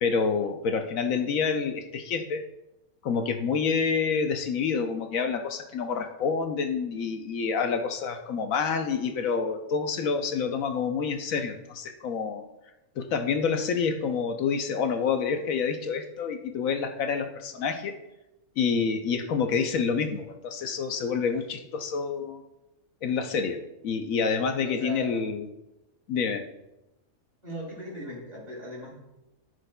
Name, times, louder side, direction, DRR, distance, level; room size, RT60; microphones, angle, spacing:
voice 1, 0.0-2.4 3.0-12.4 13.0-18.0 18.6-22.4 23.0-25.5 26.1-26.4, left 5 dB, 75° left, 6 dB, 1.0 m, -28 dB
voice 2, 24.6-25.2 27.4-28.9, equal, 40° right, -5 dB, 3.7 m, -38 dB
13.5 x 6.4 x 2.2 m, 0.93 s
omnidirectional pair, 1.5 m